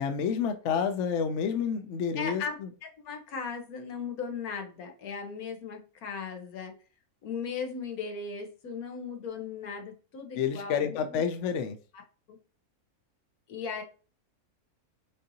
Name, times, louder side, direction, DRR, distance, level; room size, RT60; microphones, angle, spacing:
voice 1, 0.0-2.4 10.3-11.8, left 7 dB, 65° left, 8 dB, 0.8 m, -29 dB
voice 2, 2.2-2.6 3.0-6.7 7.2-11.2 11.9-12.0 12.3-12.4 13.5-13.8, left 5 dB, 85° left, 3 dB, 1.4 m, -37 dB
6.5 x 2.7 x 2.7 m, 0.36 s
omnidirectional pair, 1.5 m